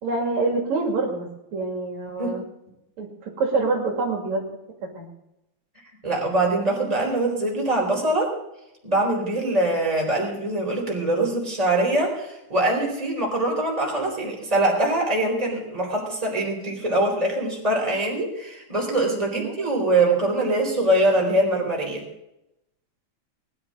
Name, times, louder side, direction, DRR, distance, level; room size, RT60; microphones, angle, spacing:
voice 1, 0.0-2.4 3.0-4.5 4.9-5.1 19.3-19.6, right 3 dB, 70° right, 0 dB, 3.6 m, -26 dB
voice 2, 6.0-8.3 8.8-22.0, right 1 dB, 10° right, -1 dB, 4.1 m, -23 dB
20.5 x 11.0 x 3.7 m, 0.87 s
omnidirectional pair, 3.4 m